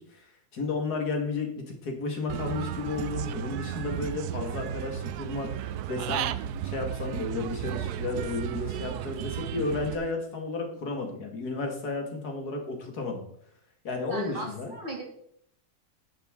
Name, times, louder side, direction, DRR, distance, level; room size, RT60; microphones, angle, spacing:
voice 1, 0.1-6.3 6.6-13.2 13.8-14.7, left 3 dB, 85° left, 2 dB, 2.5 m, -33 dB
Human voice / Bird, 2.3-9.9, right 10 dB, 85° right, 1.1 m, -34 dB
voice 2, 14.1-15.0, right 2 dB, 35° right, -1 dB, 2.9 m, -37 dB
11.0 x 9.4 x 3.8 m, 0.69 s
omnidirectional pair, 1.6 m